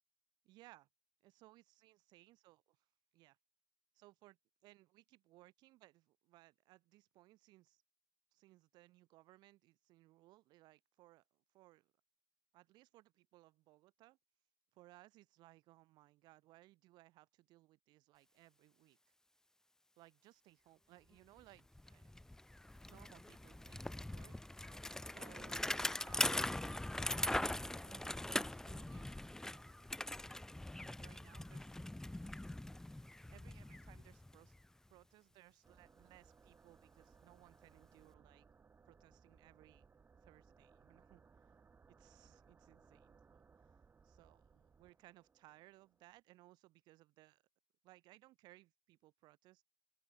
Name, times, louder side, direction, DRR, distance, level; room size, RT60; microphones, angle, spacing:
voice 1, 0.4-0.9 1.2-2.9 3.1-3.4 3.9-7.8 8.3-11.9 12.5-14.2 14.7-19.0 20.0-22.1 22.9-24.7 25.0-26.8 27.8-29.9 30.8-31.8 33.3-34.5 34.9-38.5 38.9-39.9 40.2-41.2 41.9-43.8 44.0-47.4 47.8-49.6, right 18 dB, 80° right, 4.1 m, -64 dB
Bicycle, 21.4-21.5 21.7-34.7, left 1 dB, 5° left, 0.6 m, -42 dB
sound 1, 35.6-46.2, right 5 dB, 30° right, 5.9 m, -66 dB
open air
supercardioid pair, 90°, 7 cm